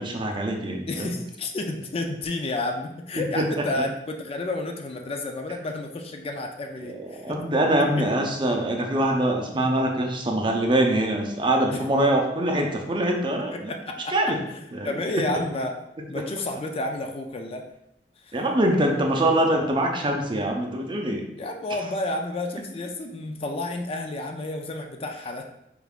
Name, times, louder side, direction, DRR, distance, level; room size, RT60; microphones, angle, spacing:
voice 1, 0.0-1.1 3.4-3.5 6.8-6.9 7.2-13.7 14.1-14.4 14.7-15.0 18.3-21.2, right 1 dB, 30° right, 2 dB, 0.5 m, -24 dB
voice 2, 0.9-7.4 7.8-7.9 11.7-11.8 13.5-14.2 14.5-14.6 14.8-15.7 16.1-17.6 18.2-18.4 21.4-25.4, left 2 dB, 35° left, 4 dB, 0.4 m, -31 dB
4.6 x 3.5 x 2.4 m, 0.83 s
head